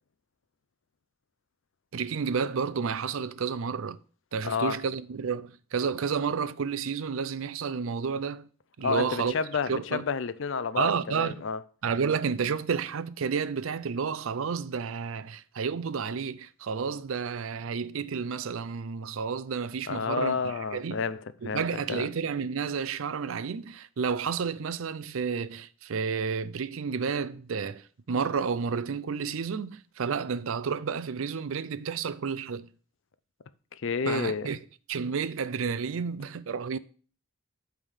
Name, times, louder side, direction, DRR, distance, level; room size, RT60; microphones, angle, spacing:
voice 1, 1.9-4.0 4.3-8.5 8.8-9.3 9.7-10.0 10.8-11.4 11.8-21.0 21.4-32.7 34.1-34.6 34.9-36.8, right 6 dB, 70° right, 0.5 m, -31 dB
voice 2, 4.4-4.8 8.8-11.6 19.9-22.1 33.7-34.5, left 5 dB, 60° left, 0.5 m, -30 dB
8.9 x 3.5 x 6.3 m
head